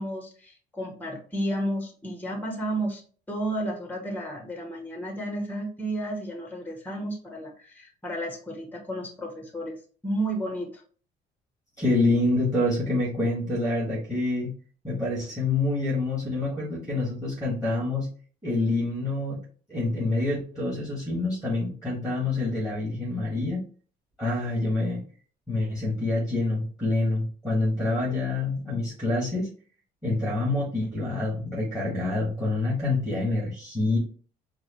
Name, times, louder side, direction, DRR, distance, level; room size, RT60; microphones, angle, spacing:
voice 1, 0.0-3.0 3.3-9.8 10.0-10.8, right 1 dB, 10° left, 3 dB, 0.9 m, -32 dB
voice 2, 11.8-14.5 14.8-18.1 18.4-19.4 19.7-23.6 24.2-25.0 25.5-29.5 30.0-34.0, left 2 dB, 5° right, -5 dB, 1.8 m, -27 dB
4.6 x 2.1 x 3.0 m, 0.42 s
cardioid pair, 110°, 17 cm